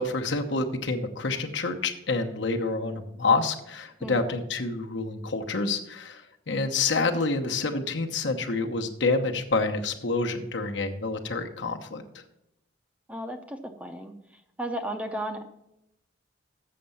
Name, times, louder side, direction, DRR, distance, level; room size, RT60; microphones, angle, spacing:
voice 1, 0.0-12.0, left 3 dB, 70° left, 4 dB, 1.0 m, -28 dB
voice 2, 13.1-14.1 14.6-15.4, right 1 dB, 5° right, 6 dB, 0.6 m, -34 dB
7.6 x 6.6 x 7.0 m, 0.85 s
head